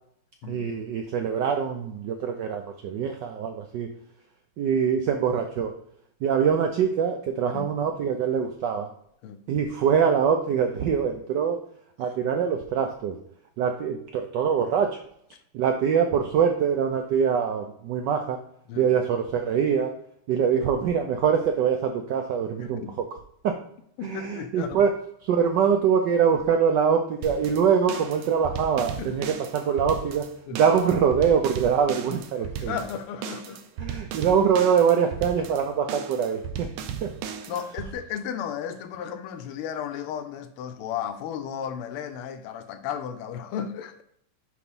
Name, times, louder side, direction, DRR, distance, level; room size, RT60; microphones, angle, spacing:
voice 1, 0.5-3.9 4.6-5.7 6.2-8.9 9.5-11.6 12.0-13.2 13.6-15.0 15.5-18.4 18.7-20.0 20.3-23.1 23.4-23.6 24.0-24.9 25.2-30.3 30.5-32.7 33.8-36.7 37.0-37.1, right 7 dB, 75° right, 1.0 m, -24 dB
voice 2, 24.0-24.8 29.0-29.1 30.5-30.6 32.6-33.6 37.5-44.0, left 8 dB, 85° left, 1.5 m, -34 dB
sound 1, 27.2-37.9, right 7 dB, 90° right, 1.6 m, -36 dB
4.9 x 4.8 x 5.3 m
omnidirectional pair, 2.4 m